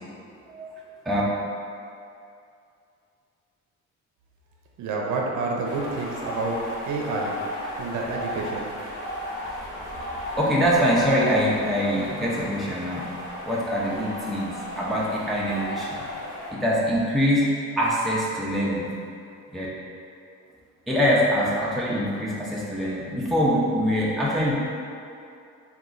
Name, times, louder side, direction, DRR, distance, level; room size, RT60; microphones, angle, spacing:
voice 1, 4.8-6.6 6.9-7.4 7.8-8.7, right 3 dB, 75° right, -1 dB, 0.5 m, -29 dB
sound 1, 5.6-16.5, left 1 dB, 80° left, 1.1 m, -35 dB
voice 2, 10.4-13.0 13.4-16.0 16.5-17.4 17.8-18.8 19.5-19.7 20.9-24.5, equal, ahead, -6 dB, 0.5 m, -24 dB
2.9 x 2.3 x 3.7 m, 2.5 s
cardioid pair, 90°, 30 cm